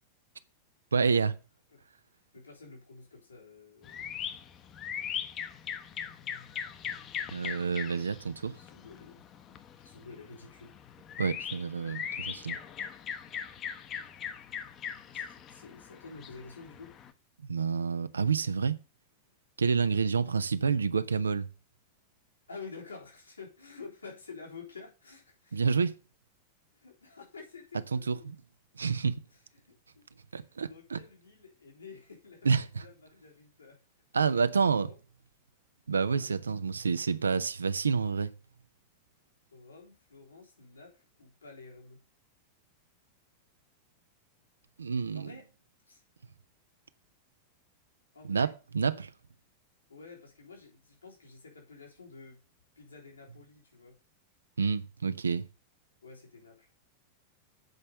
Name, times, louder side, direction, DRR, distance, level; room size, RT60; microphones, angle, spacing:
voice 1, 0.9-1.4 7.3-8.6 11.2-12.6 17.5-18.8 19.6-21.5 25.5-25.9 27.9-28.4 28.8-29.2 30.3-31.0 32.4-32.7 34.1-34.9 35.9-38.3 44.8-45.3 48.2-49.1 54.6-55.4, right 5 dB, 75° right, 0.6 m, -28 dB
voice 2, 2.3-4.1 4.6-4.7 5.9-6.1 7.4-8.1 8.5-10.8 15.1-17.0 22.5-25.6 26.7-28.3 29.3-30.0 30.3-32.5 32.8-33.8 34.8-35.0 36.2-36.3 39.5-42.0 45.1-45.4 45.9-46.0 48.1-48.5 49.9-52.4 52.8-54.0 56.0-56.7, left 4 dB, 75° left, 3.4 m, -50 dB
sound 1, 3.8-17.1, left 8 dB, 30° left, 1.0 m, -40 dB
8.1 x 5.4 x 6.7 m
figure-of-eight pair, 90°, 0 cm